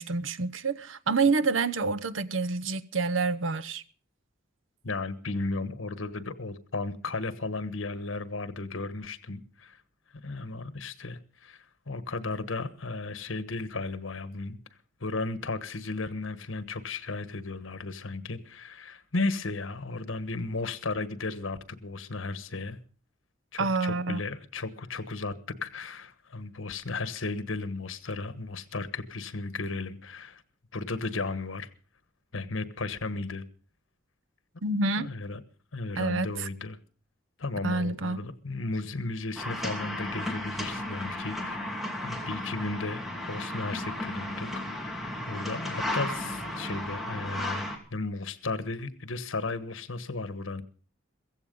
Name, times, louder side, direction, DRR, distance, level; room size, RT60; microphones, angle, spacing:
voice 1, 0.0-3.8 23.6-24.2 34.6-35.1 36.0-36.5 37.6-38.3, right 3 dB, 80° right, 0.8 m, -28 dB
voice 2, 4.8-9.8 10.1-14.6 15.0-22.8 23.5-25.3 25.6-30.4 30.7-31.7 32.3-33.4 35.0-35.4 35.7-36.8 37.4-41.7 42.0-50.6, left 3 dB, 85° left, 1.3 m, -35 dB
sound 1, 39.4-47.8, left 1 dB, ahead, 2.7 m, -34 dB
15.5 x 15.5 x 5.3 m
head